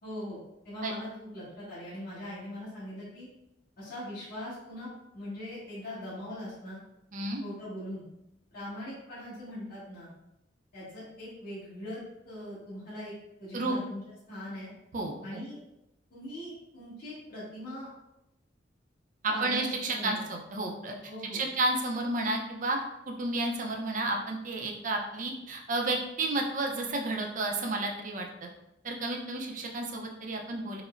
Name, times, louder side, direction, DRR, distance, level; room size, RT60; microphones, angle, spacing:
voice 1, 0.0-3.3 3.8-4.9 5.1-6.8 7.4-8.1 8.5-10.1 10.7-12.0 12.2-13.1 13.4-14.0 14.3-14.7 15.2-15.6 16.1-17.9 19.3-20.2 21.1-21.4, left 1 dB, 55° left, -11 dB, 1.4 m, -41 dB
voice 2, 14.9-15.4 19.2-20.9 21.3-22.8 23.1-28.5 28.8-30.8, right 2 dB, 45° right, 1 dB, 0.5 m, -31 dB
4.9 x 2.1 x 2.5 m, 0.88 s
head